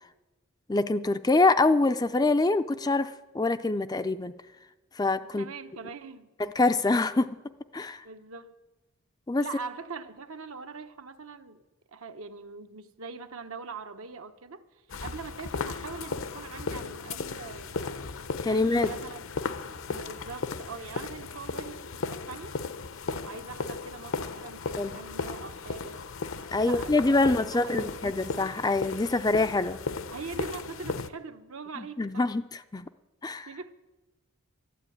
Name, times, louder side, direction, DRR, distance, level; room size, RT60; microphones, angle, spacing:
voice 1, 0.7-4.3 5.0-5.5 6.4-7.3 7.7-8.0 9.3-9.4 18.4-18.9 24.8-24.9 26.5-29.8 32.0-32.9 33.2-33.5, left 2 dB, 15° left, 11 dB, 0.4 m, -25 dB
voice 2, 5.2-6.3 8.0-8.5 9.4-11.6 11.9-17.9 18.5-19.2 19.9-22.5 23.2-26.0 26.6-28.0 30.1-32.2 33.5-33.7, right 4 dB, 70° right, 8 dB, 1.0 m, -42 dB
sound 1, 14.9-31.1, left 4 dB, 65° left, 0.7 m, -36 dB
12.5 x 12.0 x 8.5 m, 1.1 s
head